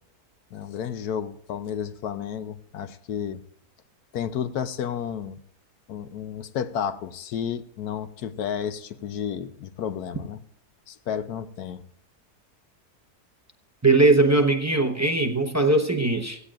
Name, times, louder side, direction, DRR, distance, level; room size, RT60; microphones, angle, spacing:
voice 1, 0.5-3.4 4.1-5.4 5.9-10.4 10.9-11.8, left 8 dB, 75° left, 11 dB, 1.2 m, -32 dB
voice 2, 13.8-16.4, right 2 dB, 15° right, 5 dB, 0.7 m, -20 dB
16.5 x 16.0 x 2.5 m, 0.71 s
omnidirectional pair, 1.7 m